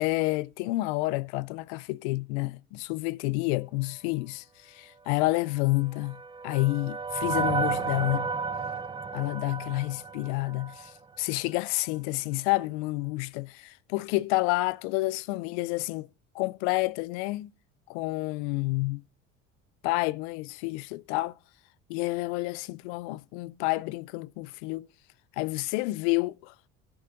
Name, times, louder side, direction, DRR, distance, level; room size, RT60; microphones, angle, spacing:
voice 1, 0.0-8.3 9.1-16.1 16.3-17.5 17.9-19.0 19.8-21.4 21.9-24.9 25.4-26.7, left 22 dB, 75° left, 0.5 m, -29 dB
sound 1, 5.6-11.0, right 5 dB, 15° right, 0.5 m, -32 dB
14.5 x 7.0 x 3.8 m
supercardioid pair, 80°, 34 cm